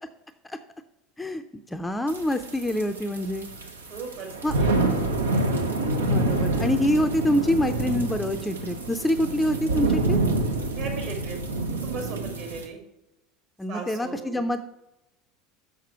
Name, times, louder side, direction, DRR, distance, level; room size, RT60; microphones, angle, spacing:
voice 1, 1.2-3.5 4.4-4.7 6.0-10.2 13.6-14.6, left 1 dB, 10° left, 8 dB, 0.5 m, -26 dB
sound 1, 2.1-12.7, right 2 dB, 80° right, 0.8 m, -27 dB
voice 2, 3.9-4.3 4.6-4.7 10.8-11.4 11.8-12.8 13.7-14.4, right 5 dB, 55° right, 2 dB, 2.3 m, -37 dB
6.7 x 6.4 x 4.5 m, 0.90 s
figure-of-eight pair, 70°, 0 cm